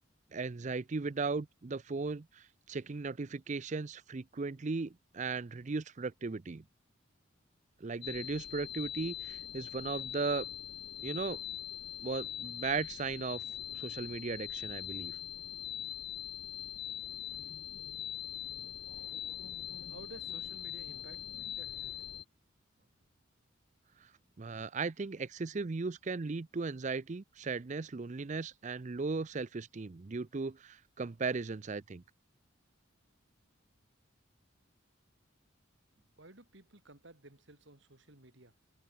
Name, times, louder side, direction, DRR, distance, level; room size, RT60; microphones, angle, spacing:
voice 1, 0.3-6.6 7.8-10.5 11.0-11.4 12.0-13.4 13.7-15.2 24.4-32.0, right 4 dB, 35° right, 0.5 m, -37 dB
sound 1, 8.0-22.2, left 11 dB, 55° left, 1.4 m, -42 dB
voice 2, 19.9-22.0 36.2-38.5, right 2 dB, 65° right, 2.9 m, -55 dB
head